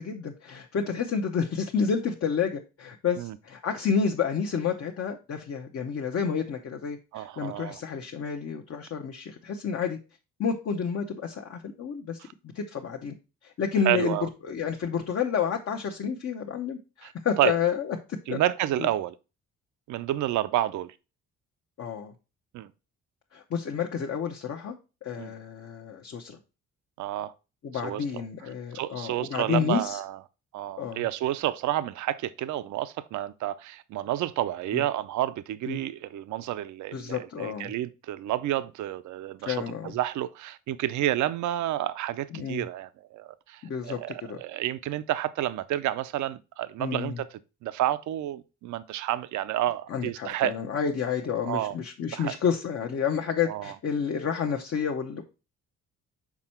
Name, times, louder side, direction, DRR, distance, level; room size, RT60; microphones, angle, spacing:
voice 1, 0.0-10.0 10.4-12.2 12.5-13.2 13.4-18.4 18.8-18.9 21.8-22.1 23.3-24.8 25.0-26.4 27.6-30.0 30.8-31.0 34.7-34.8 35.7-35.8 36.9-37.7 39.4-39.9 42.3-42.6 43.6-44.4 46.8-47.2 49.9-55.2, left 6 dB, 50° left, 0.9 m, -30 dB
voice 2, 7.1-7.8 12.2-12.3 13.8-14.3 17.0-17.1 17.4-17.5 18.3-19.2 19.9-20.9 22.5-22.7 25.2-25.3 27.0-27.3 27.8-28.2 28.7-30.2 30.5-47.3 47.6-50.5 51.5-51.8 52.1-52.3 53.5-53.7, right 13 dB, 70° right, 0.5 m, -30 dB
6.0 x 4.4 x 4.3 m
cardioid pair, 90°, 30 cm